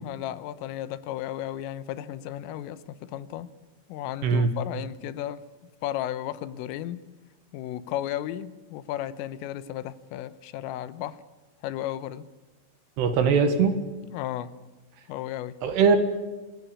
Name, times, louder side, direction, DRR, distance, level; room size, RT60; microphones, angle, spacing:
voice 1, 0.0-3.5 3.9-5.4 5.8-7.1 7.5-11.2 11.6-12.3 14.1-14.6 15.1-15.6, left 12 dB, 80° left, 15 dB, 3.5 m, -34 dB
voice 2, 13.0-13.8 15.6-16.0, right 5 dB, 65° right, 8 dB, 3.2 m, -21 dB
27.0 x 17.0 x 8.5 m, 1.2 s
omnidirectional pair, 5.9 m